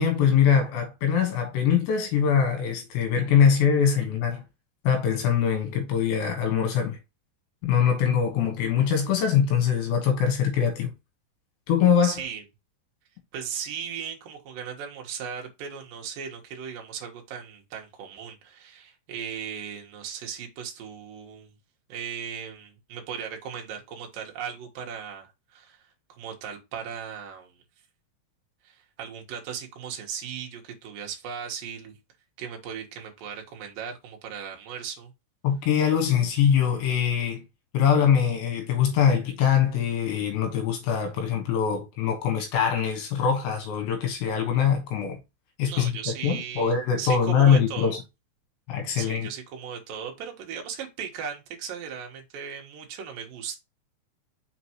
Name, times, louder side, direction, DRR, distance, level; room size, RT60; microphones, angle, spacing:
voice 1, 0.0-4.4 4.9-7.0 7.6-10.9 11.7-12.2 35.4-37.4 37.7-45.2 45.6-45.9 46.2-48.0 48.7-49.3, left 7 dB, 75° left, 3.4 m, -23 dB
voice 2, 12.0-12.4 13.3-21.5 21.9-25.9 26.2-27.5 28.6-32.0 32.4-35.1 45.7-48.0 49.0-53.6, right 7 dB, 65° right, 2.5 m, -37 dB
6.4 x 5.0 x 3.0 m
omnidirectional pair, 5.4 m